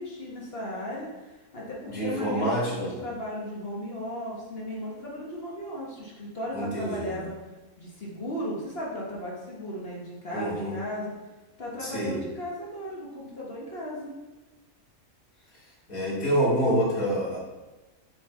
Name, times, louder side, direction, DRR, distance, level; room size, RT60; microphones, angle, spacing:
voice 1, 0.0-7.4 7.8-11.1 11.6-14.1, left 1 dB, 40° left, -4 dB, 1.5 m, -36 dB
voice 2, 1.9-2.9 6.5-7.2 10.3-10.7 11.8-12.2 15.9-17.4, right 1 dB, 65° left, -8 dB, 2.9 m, -27 dB
7.5 x 4.0 x 4.4 m, 1.1 s
omnidirectional pair, 1.6 m